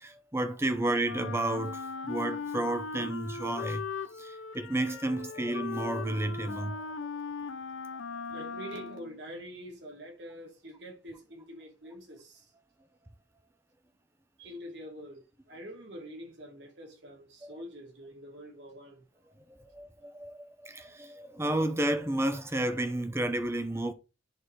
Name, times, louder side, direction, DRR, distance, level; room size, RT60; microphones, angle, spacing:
voice 1, 0.0-3.8 4.2-6.8 8.1-8.2 17.4-17.6 19.7-23.9, right 1 dB, 15° right, 0.7 m, -31 dB
Wind instrument woodwind instrument, 1.0-9.2, left 5 dB, 75° left, 0.5 m, -39 dB
voice 2, 8.3-12.5 14.4-19.0, equal, 60° right, 2.2 m, -45 dB
10.5 x 3.9 x 3.2 m
head